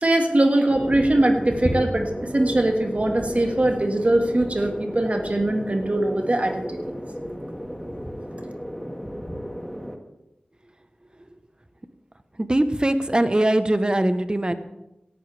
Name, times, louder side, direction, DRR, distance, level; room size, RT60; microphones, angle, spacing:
voice 1, 0.0-6.9, right 1 dB, 45° right, 3 dB, 1.8 m, -21 dB
sound 1, 0.7-10.0, equal, ahead, 1.8 m, -33 dB
voice 2, 12.4-14.5, right 1 dB, 30° right, 10 dB, 1.0 m, -21 dB
17.5 x 11.5 x 3.4 m, 0.93 s
wide cardioid pair, 45°, 3 cm